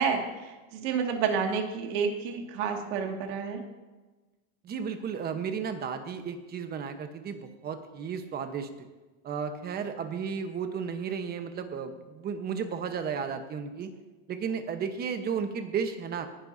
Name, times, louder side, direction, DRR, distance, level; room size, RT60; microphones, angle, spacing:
voice 1, 0.0-3.6, right 6 dB, 50° right, 3 dB, 2.2 m, -29 dB
voice 2, 4.6-8.7 9.2-13.9 14.3-16.3, right 6 dB, 25° right, 8 dB, 1.1 m, -33 dB
18.5 x 11.0 x 2.7 m, 1.2 s
supercardioid pair, 150°, 39 cm